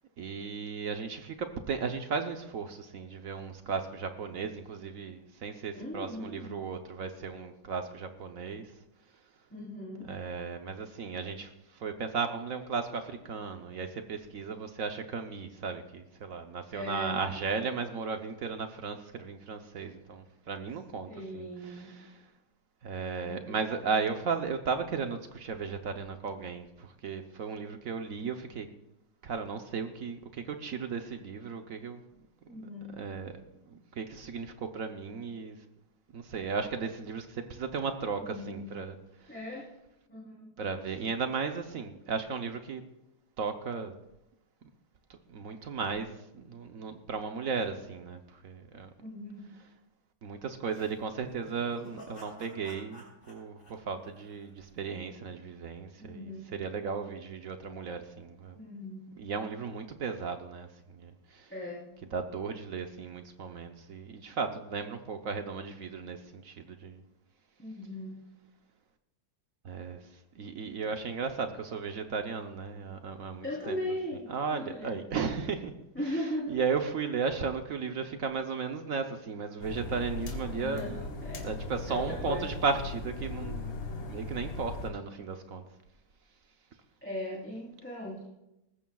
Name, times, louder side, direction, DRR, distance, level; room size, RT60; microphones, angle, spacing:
voice 1, 0.2-8.7 10.0-22.2 22.8-28.7 29.2-32.0 32.5-32.6 32.9-33.4 33.7-35.6 36.1-39.3 40.6-42.8 43.4-43.9 45.1-48.9 50.2-58.6 59.1-61.5 62.1-67.0 69.6-70.0 70.3-73.8 74.3-75.7 76.1-76.2 76.5-81.0 81.4-83.7 84.1-85.6, right 5 dB, 60° right, 7 dB, 0.9 m, -35 dB
voice 2, 5.7-6.5 9.5-10.1 16.7-17.2 21.1-22.0 23.2-23.9 32.5-33.0 38.2-38.7 39.3-39.7 40.1-40.5 49.0-49.4 56.0-56.4 58.5-59.1 61.5-61.8 67.6-68.2 73.4-75.0 75.9-76.6 80.6-80.9 81.2-81.4 81.9-82.4 87.0-88.2, left 1 dB, 5° left, -7 dB, 3.3 m, -38 dB
sound 1, 50.7-54.8, left 1 dB, 50° left, 5.9 m, -52 dB
sound 2, 79.6-84.9, left 2 dB, 90° left, 2.4 m, -38 dB
20.0 x 15.0 x 2.3 m, 0.89 s
omnidirectional pair, 2.4 m